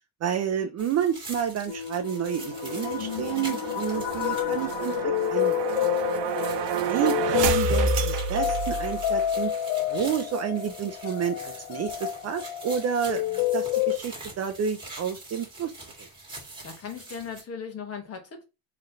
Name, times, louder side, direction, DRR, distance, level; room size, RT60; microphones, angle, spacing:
voice 1, 0.2-5.8 6.9-9.5 9.9-15.7 16.0-16.1, right 8 dB, 35° right, 0.4 m, -30 dB
sound 1, 0.8-17.4, right 2 dB, 10° right, 1.7 m, -44 dB
sound 2, 1.7-14.0, left 13 dB, 60° left, 0.6 m, -29 dB
sound 3, 2.5-9.3, right 7 dB, 60° right, 0.8 m, -30 dB
voice 2, 16.6-18.4, left 6 dB, 30° left, 1.1 m, -38 dB
4.1 x 3.2 x 3.9 m
cardioid pair, 155°, 46 cm